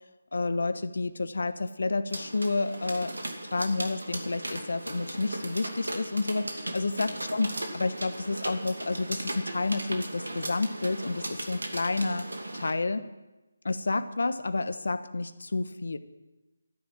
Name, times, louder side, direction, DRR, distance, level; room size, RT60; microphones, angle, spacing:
voice 1, 0.3-3.2 3.5-12.3 12.5-13.1 13.6-16.0, left 3 dB, 70° left, 11 dB, 1.1 m, -30 dB
sound 1, 2.1-12.7, right 1 dB, 85° right, 2.6 m, -37 dB
13.5 x 10.5 x 7.8 m, 1.1 s
figure-of-eight pair, 155°, 0 cm